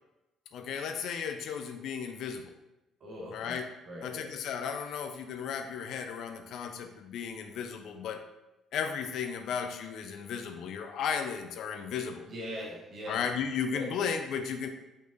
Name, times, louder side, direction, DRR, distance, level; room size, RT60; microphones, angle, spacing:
voice 1, 0.5-2.5 3.3-3.6 4.0-8.2 8.7-12.3 13.1-14.7, left 7 dB, 55° left, 6 dB, 0.4 m, -35 dB
voice 2, 3.0-3.6 3.8-4.3 12.3-13.2 13.7-14.0, equal, 45° right, -2 dB, 1.5 m, -41 dB
5.0 x 4.0 x 2.6 m, 0.97 s
figure-of-eight pair, 45°, 0 cm